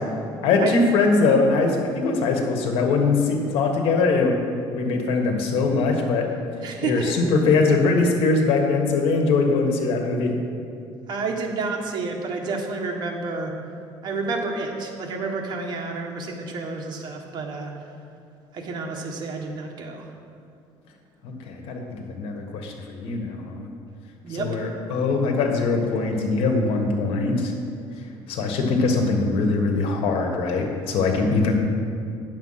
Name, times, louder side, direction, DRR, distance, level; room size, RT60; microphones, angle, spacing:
voice 1, 0.4-4.3 4.7-6.3 6.8-10.4 21.2-23.7 24.4-27.5 28.3-31.5, left 3 dB, 80° left, 3 dB, 1.5 m, -22 dB
voice 2, 6.6-7.1 11.1-13.5 14.0-17.7 18.5-20.0 24.2-24.6, right 3 dB, 50° right, 1 dB, 1.5 m, -29 dB
9.2 x 7.2 x 5.7 m, 2.5 s
cardioid pair, 140°, 10 cm